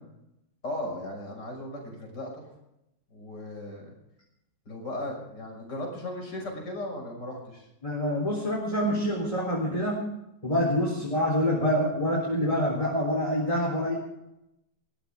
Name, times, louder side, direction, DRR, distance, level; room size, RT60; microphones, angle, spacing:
voice 1, 0.6-2.5 3.1-3.9 4.7-7.7 10.9-11.0, left 1 dB, 65° left, 1 dB, 6.7 m, -37 dB
voice 2, 7.8-10.0 10.4-13.9, equal, 15° left, -4 dB, 4.0 m, -26 dB
21.0 x 16.0 x 3.7 m, 0.85 s
omnidirectional pair, 2.0 m